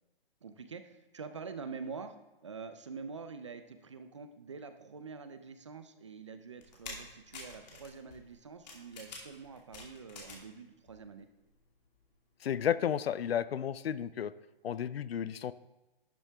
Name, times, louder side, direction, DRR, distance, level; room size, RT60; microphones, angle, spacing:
voice 1, 0.4-2.2 2.4-11.3, right 5 dB, 30° right, 9 dB, 0.4 m, -46 dB
sound 1, 6.6-10.6 10.9-11.6 12.0-12.1, left 3 dB, 45° left, 2.3 m, -48 dB
voice 2, 12.4-14.3 14.6-15.5, left 9 dB, 85° left, 17 dB, 0.5 m, -32 dB
11.5 x 7.3 x 3.4 m, 1.1 s
hypercardioid pair, 170°, 30 cm